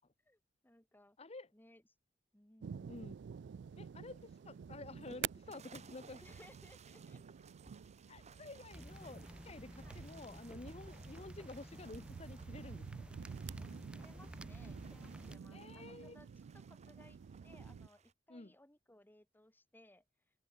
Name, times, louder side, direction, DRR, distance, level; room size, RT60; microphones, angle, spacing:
voice 1, 0.3-1.2 1.5-1.8 2.3-3.1 6.2-7.2 9.8-10.0 13.9-16.3 16.5-17.2 17.4-20.0, left 1 dB, 10° left, 1.8 m, -63 dB
voice 2, 1.2-1.5 2.9-3.1 3.8-6.2 8.1-13.2 15.5-16.2 18.3-18.5, left 2 dB, 35° left, 1.0 m, -51 dB
sound 1, 2.6-17.9, right 7 dB, 70° right, 0.3 m, -50 dB
sound 2, 4.0-18.1, right 4 dB, 40° right, 1.1 m, -61 dB
sound 3, 8.7-15.4, equal, 5° right, 1.7 m, -53 dB
open air
head